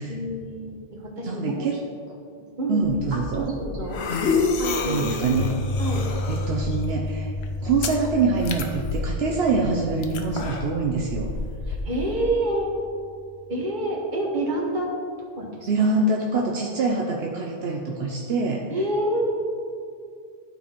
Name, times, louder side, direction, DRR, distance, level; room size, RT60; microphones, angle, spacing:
voice 1, 0.0-1.7 2.3-4.0 4.6-5.1 5.8-6.1 11.7-12.7 13.5-14.9 15.2-16.0 18.7-19.6, right 1 dB, 50° right, -3 dB, 1.5 m, -28 dB
voice 2, 1.3-1.8 2.7-3.5 4.9-5.6 6.3-7.3 7.6-11.3 15.7-18.6, right 3 dB, 75° right, 0 dB, 0.9 m, -24 dB
sound 1, 2.8-12.3, left 4 dB, 85° left, 1.0 m, -30 dB
Piano, 5.3-13.4, left 2 dB, 70° left, 1.3 m, -33 dB
12.0 x 4.3 x 4.5 m, 2.3 s
omnidirectional pair, 1.1 m